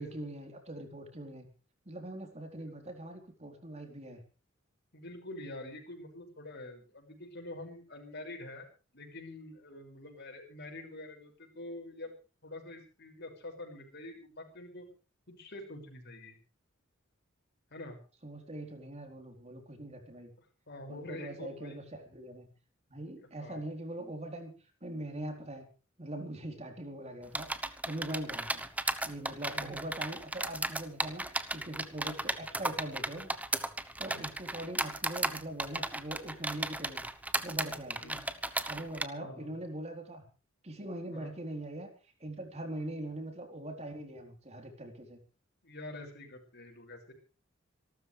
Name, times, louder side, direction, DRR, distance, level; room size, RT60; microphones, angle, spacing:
voice 1, 0.0-1.5 1.9-4.2 18.2-20.3 20.9-22.5 22.9-24.5 24.8-25.7 26.0-27.5 27.8-28.6 29.0-33.3 34.0-37.1 37.4-38.1 38.6-40.2 40.6-41.9 42.2-45.2, right 1 dB, 35° right, 4 dB, 4.1 m, -42 dB
voice 2, 4.9-8.7 8.9-12.1 12.4-14.9 15.3-16.4 17.7-18.0 20.7-21.8 23.4-23.6 29.5-29.8 34.1-34.3 38.0-38.2 39.1-39.5 41.1-41.3 42.8-42.9 45.6-47.1, left 1 dB, 55° left, 3 dB, 6.2 m, -46 dB
sound 1, 27.3-39.0, right 2 dB, 5° right, 1.0 m, -35 dB
26.5 x 13.0 x 3.4 m, 0.35 s
head